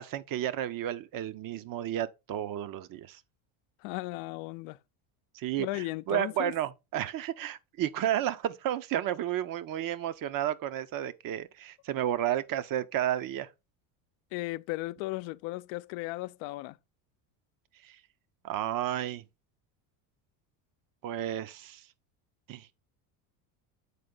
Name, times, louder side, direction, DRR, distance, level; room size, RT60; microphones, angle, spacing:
voice 1, 0.0-3.2 5.3-13.5 17.8-18.0 18.4-19.2 21.0-21.9 22.5-22.7, right 11 dB, 45° right, 0.8 m, -32 dB
voice 2, 3.8-4.8 5.6-6.5 14.3-16.8, left 20 dB, 70° left, 0.6 m, -36 dB
8.4 x 4.3 x 3.9 m
supercardioid pair, 100°, 47 cm